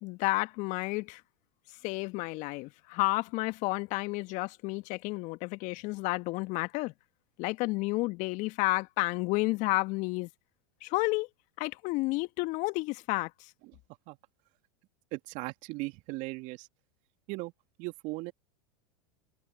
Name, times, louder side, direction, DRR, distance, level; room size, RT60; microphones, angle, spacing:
voice 1, 0.0-1.2 1.8-6.9 7.4-10.3 10.8-11.3 11.6-13.5, left 23 dB, 50° left, 1.7 m, -31 dB
voice 2, 15.1-16.7 17.3-17.5 17.8-18.3, right 24 dB, 50° right, 2.6 m, -37 dB
hypercardioid pair, 90°, 17 cm